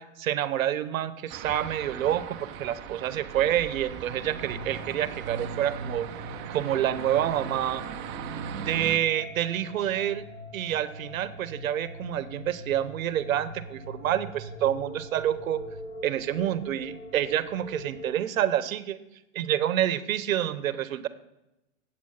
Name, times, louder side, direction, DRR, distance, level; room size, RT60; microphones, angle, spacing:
voice 1, 0.0-6.1 6.5-7.8 8.6-10.2 10.5-15.6 16.0-19.0 19.3-21.1, right 11 dB, 80° right, 14 dB, 0.9 m, -28 dB
sound 1, 1.3-9.0, right 8 dB, 30° right, 0.6 m, -39 dB
sound 2, 4.0-18.1, equal, 65° left, 2.6 m, -42 dB
8.1 x 7.7 x 5.6 m, 0.92 s
hypercardioid pair, 135°, 40 cm